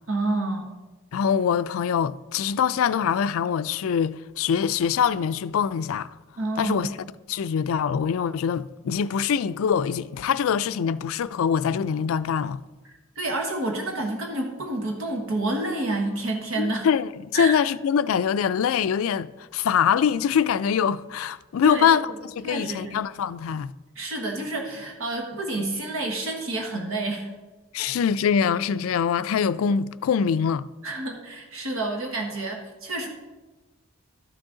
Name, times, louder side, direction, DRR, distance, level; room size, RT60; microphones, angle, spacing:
voice 1, 0.1-0.7 6.4-6.8 13.2-16.9 17.3-17.5 21.6-21.9 22.4-23.0 23.9-27.3 27.8-27.9 30.8-33.1, right 2 dB, 65° right, 1.3 m, -29 dB
voice 2, 1.1-6.1 6.6-6.9 7.3-12.6 16.6-23.7 27.7-30.7, left 7 dB, 70° left, 0.3 m, -24 dB
12.5 x 6.2 x 3.8 m
head